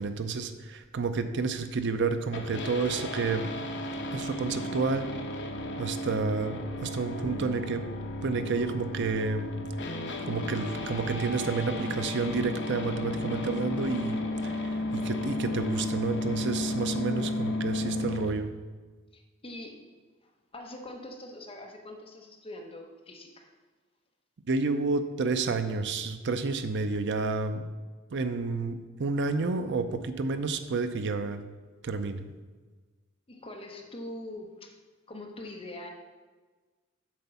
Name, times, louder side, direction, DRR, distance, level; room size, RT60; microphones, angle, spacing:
voice 1, 0.0-3.5 4.1-5.1 5.8-7.8 8.2-9.5 10.3-18.5 24.5-27.6 28.1-31.4 31.8-32.2, right 4 dB, 60° right, 10 dB, 0.5 m, -30 dB
sound 1, 2.3-18.3, left 1 dB, 60° left, 1.0 m, -33 dB
voice 2, 19.1-19.9 20.5-23.5 33.3-34.8 35.1-35.9, left 1 dB, 30° left, 2 dB, 1.1 m, -43 dB
7.7 x 4.5 x 6.9 m, 1.4 s
head